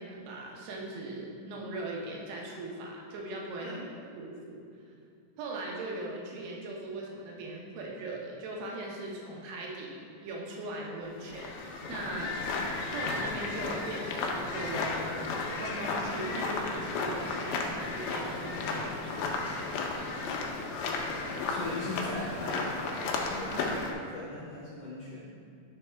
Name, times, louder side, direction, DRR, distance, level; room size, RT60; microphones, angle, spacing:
voice 1, 0.0-3.8 4.2-4.6 5.4-10.0 10.2-12.4 12.9-15.3 15.6-19.7, right 2 dB, 80° right, -2 dB, 2.9 m, -39 dB
sound 1, 11.2-23.9, left 3 dB, 85° left, 2.1 m, -34 dB
voice 2, 21.2-22.8 23.2-25.3, left 2 dB, 65° left, -9 dB, 2.1 m, -39 dB
10.0 x 3.5 x 3.3 m, 2.4 s
omnidirectional pair, 5.0 m